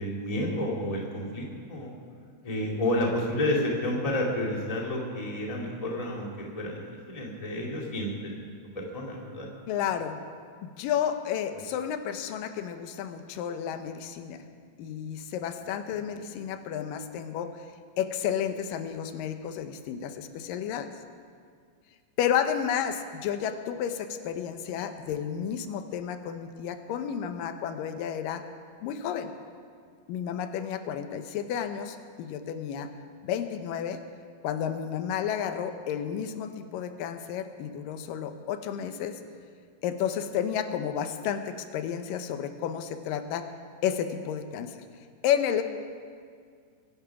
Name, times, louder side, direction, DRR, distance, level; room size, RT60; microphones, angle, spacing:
voice 1, 0.0-1.9 2.4-6.8 7.1-8.3 8.7-9.5, left 1 dB, 15° left, -2 dB, 1.8 m, -30 dB
voice 2, 9.7-10.2 10.6-14.4 14.8-17.5 18.0-20.9 22.2-28.4 28.8-29.3 30.1-32.9 33.2-34.0 34.4-39.2 39.8-43.5 43.8-44.8 45.2-45.6, left 9 dB, 85° left, 8 dB, 2.5 m, -31 dB
22.5 x 9.9 x 5.9 m, 2.1 s
omnidirectional pair, 3.9 m